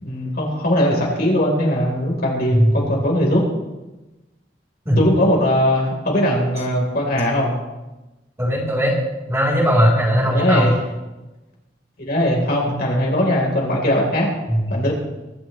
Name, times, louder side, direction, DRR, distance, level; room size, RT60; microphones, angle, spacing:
voice 1, 0.0-3.4 5.0-7.5 10.2-10.7 12.0-14.3 14.7-14.9, left 1 dB, 60° left, -2 dB, 3.8 m, -20 dB
voice 2, 8.4-8.9 9.3-10.7 14.5-14.8, equal, 15° right, -4 dB, 4.1 m, -18 dB
23.0 x 11.0 x 3.2 m, 1.1 s
head